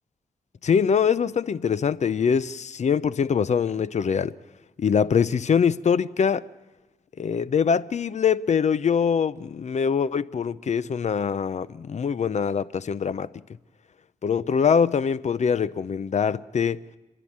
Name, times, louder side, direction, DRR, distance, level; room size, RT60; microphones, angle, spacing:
voice 1, 0.6-4.3 4.8-6.4 7.2-13.3 14.2-16.8, left 6 dB, 55° left, 0.7 m, -23 dB
29.5 x 11.0 x 8.8 m
cardioid pair, 75°, 14 cm